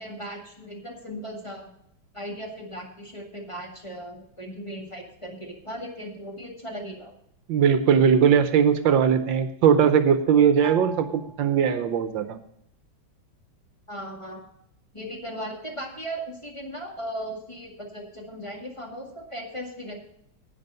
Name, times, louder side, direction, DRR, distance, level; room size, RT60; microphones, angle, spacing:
voice 1, 0.0-1.7 2.1-7.1 13.9-14.4 14.9-20.0, equal, 15° left, 0 dB, 2.0 m, -37 dB
voice 2, 7.5-12.4, right 7 dB, 75° right, 10 dB, 1.5 m, -20 dB
Bell, 10.6-12.2, right 3 dB, 45° right, 0.6 m, -41 dB
10.5 x 9.4 x 5.5 m, 0.72 s
omnidirectional pair, 2.1 m